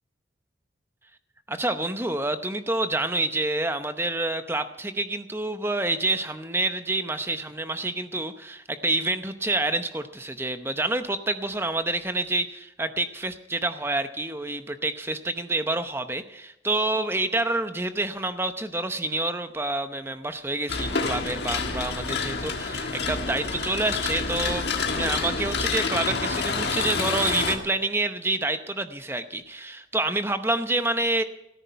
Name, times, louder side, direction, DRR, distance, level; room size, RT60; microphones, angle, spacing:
voice 1, 1.5-31.2, right 2 dB, 10° right, 9 dB, 0.7 m, -28 dB
sound 1, 20.7-27.6, left 4 dB, 60° left, 1.6 m, -28 dB
14.5 x 13.5 x 5.6 m, 0.89 s
head